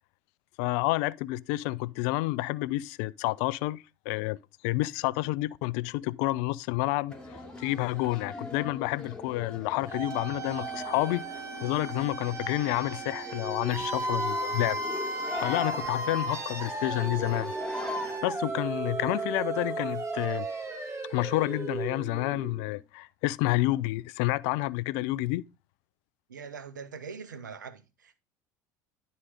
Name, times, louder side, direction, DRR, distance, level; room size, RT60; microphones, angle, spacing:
voice 1, 0.6-4.4 4.6-14.8 15.4-17.5 18.2-20.5 21.1-25.4, left 19 dB, 65° left, 0.4 m, -29 dB
sound 1, 7.1-18.2, left 3 dB, 10° left, 2.7 m, -41 dB
sound 2, 9.9-22.7, right 3 dB, 30° right, 2.0 m, -35 dB
voice 2, 26.3-28.2, right 6 dB, 90° right, 0.9 m, -42 dB
11.0 x 4.1 x 4.9 m
hypercardioid pair, 70°, 10 cm